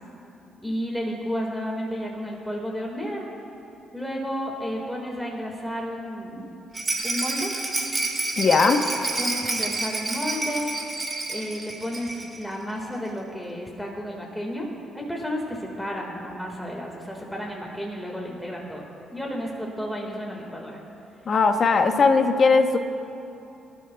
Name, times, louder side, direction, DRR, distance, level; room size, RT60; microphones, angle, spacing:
voice 1, 0.6-3.3 3.9-6.5 7.0-7.5 9.2-10.7 11.3-14.7 14.9-18.8 19.1-20.8, equal, 5° left, -1 dB, 1.9 m, -32 dB
Rattle, 6.7-12.4 12.7-12.8 13.1-13.2, right 2 dB, 30° right, 2.8 m, -29 dB
voice 2, 8.4-8.8 21.2-22.8, left 4 dB, 45° left, 6 dB, 1.0 m, -19 dB
25.0 x 12.0 x 2.4 m, 3.0 s
cardioid pair, 90°, 0 cm